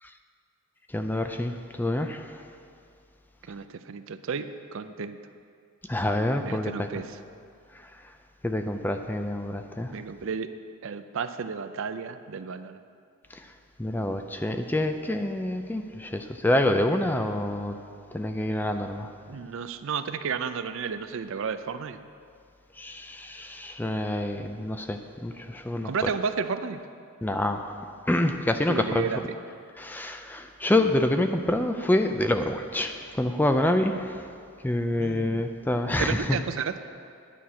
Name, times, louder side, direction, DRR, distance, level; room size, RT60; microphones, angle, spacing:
voice 1, 0.9-2.4 5.9-7.0 7.7-7.9 8.4-9.9 13.3-13.5 13.8-17.8 18.1-19.1 22.8-26.1 27.2-29.1 29.8-34.3 34.6-36.4, left 1 dB, 10° left, 6 dB, 0.4 m, -27 dB
voice 2, 3.5-5.2 6.4-7.2 9.9-10.5 10.8-12.8 19.3-22.0 25.8-26.8 28.7-29.2 35.0-35.5 36.0-36.8, right 6 dB, 60° right, 11 dB, 0.4 m, -32 dB
10.0 x 5.9 x 8.3 m, 2.3 s
head